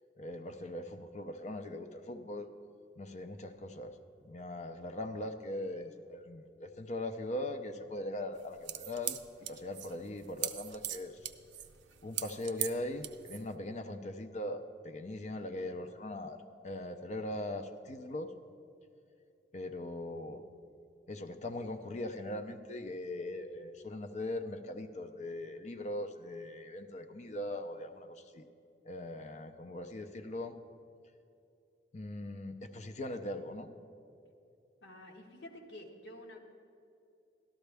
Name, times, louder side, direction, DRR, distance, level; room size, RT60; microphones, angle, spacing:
voice 1, 0.2-2.5 3.0-3.9 4.2-11.3 12.0-18.3 19.5-20.4 21.1-28.4 28.8-30.5 31.9-33.7, left 1 dB, 40° left, 8 dB, 0.5 m, -40 dB
sound 1, 8.3-13.5, right 12 dB, 90° right, 0.5 m, -40 dB
voice 2, 34.8-36.4, left 1 dB, 90° left, 1 dB, 1.4 m, -49 dB
12.5 x 12.5 x 3.4 m, 2.6 s
head